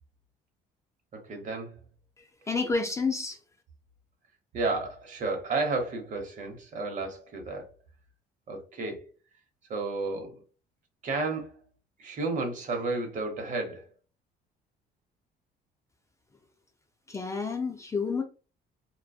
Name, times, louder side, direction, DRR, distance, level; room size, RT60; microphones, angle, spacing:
voice 1, 1.1-1.8 4.5-7.7 8.5-9.0 9.7-10.4 11.0-11.6 12.0-13.9, right 3 dB, 50° right, 0.8 m, -32 dB
voice 2, 2.2-3.4 17.1-18.2, left 4 dB, 15° left, 0.4 m, -30 dB
2.5 x 2.2 x 2.2 m
cardioid pair, 110°, 17 cm